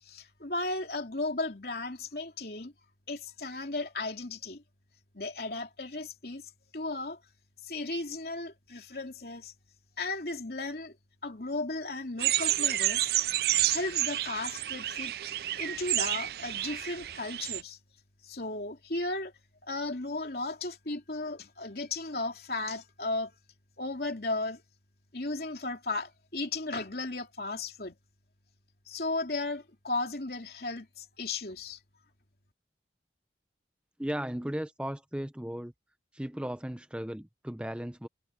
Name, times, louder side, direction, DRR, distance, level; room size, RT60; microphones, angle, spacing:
voice 1, 0.0-2.7 3.1-4.6 5.1-6.4 6.7-7.2 7.6-9.5 10.0-10.9 11.2-13.1 13.7-15.1 15.6-17.8 18.2-19.3 19.6-23.3 23.8-24.6 25.1-27.9 28.9-31.8, left 2 dB, 55° left, 3.3 m, -35 dB
sound 1, 12.2-17.6, right 14 dB, 55° right, 0.4 m, -30 dB
voice 2, 34.0-35.7 36.1-38.1, equal, 5° right, 0.6 m, -36 dB
head